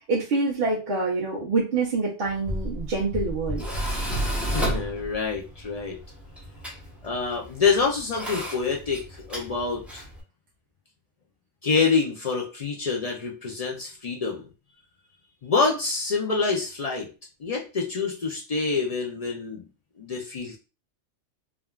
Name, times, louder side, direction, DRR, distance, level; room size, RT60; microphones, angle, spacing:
voice 1, 0.1-3.6, right 3 dB, 55° right, -4 dB, 0.8 m, -26 dB
Tools, 2.2-10.2, equal, ahead, 0.7 m, -32 dB
voice 2, 4.5-6.0 7.0-10.0 11.6-14.4 15.4-17.1 17.4-19.6 20.0-20.6, left 4 dB, 65° left, -2 dB, 0.3 m, -26 dB
3.5 x 2.3 x 2.2 m, 0.32 s
omnidirectional pair, 1.3 m